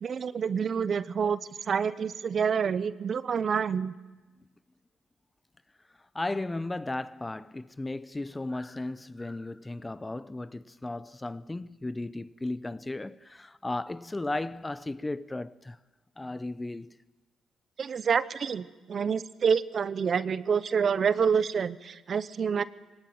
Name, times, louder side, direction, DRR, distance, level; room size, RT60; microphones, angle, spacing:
voice 1, 0.0-3.9 17.8-22.6, right 6 dB, 50° right, 0.8 m, -27 dB
voice 2, 6.1-15.8 16.2-17.0, left 2 dB, 15° left, 0.7 m, -35 dB
21.5 x 18.0 x 9.3 m
cardioid pair, 90°, 0 cm